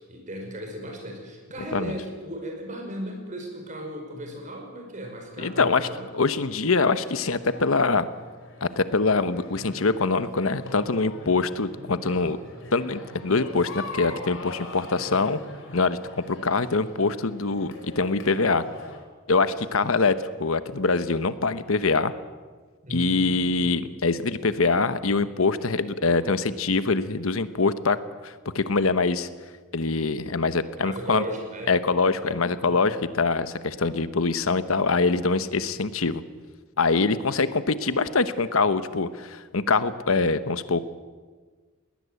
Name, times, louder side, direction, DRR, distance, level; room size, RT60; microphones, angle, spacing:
voice 1, 0.0-6.1 19.4-19.6 22.8-23.9 30.8-31.8 32.1-32.9, equal, 40° right, 3 dB, 5.5 m, -37 dB
voice 2, 5.4-5.9 6.1-8.1 8.6-12.4 12.7-15.4 15.7-16.0 16.3-18.6 19.3-22.1 22.9-28.0 28.2-29.3 29.7-31.2 31.7-36.2 36.8-40.8, left 4 dB, 85° left, 13 dB, 1.1 m, -24 dB
sound 1, 6.9-19.0, left 2 dB, 65° left, 4.8 m, -42 dB
21.5 x 18.0 x 8.3 m, 1.4 s
head